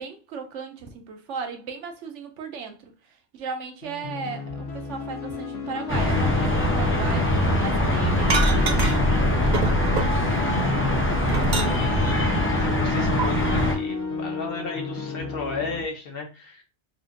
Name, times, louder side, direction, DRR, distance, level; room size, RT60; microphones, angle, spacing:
voice 1, 0.0-2.9 3.3-9.6, right 5 dB, 90° right, 1.0 m, -36 dB
sound 1, 3.8-15.8, left 4 dB, 90° left, 1.1 m, -33 dB
sound 2, 5.9-13.8, left 1 dB, 15° left, 0.5 m, -22 dB
sound 3, 8.3-9.2 9.5-10.5 10.9-12.0 13.2-13.3, right 3 dB, 50° right, 0.6 m, -27 dB
voice 2, 10.0-16.6, left 3 dB, 55° left, 1.0 m, -36 dB
4.1 x 2.5 x 2.5 m
omnidirectional pair, 1.2 m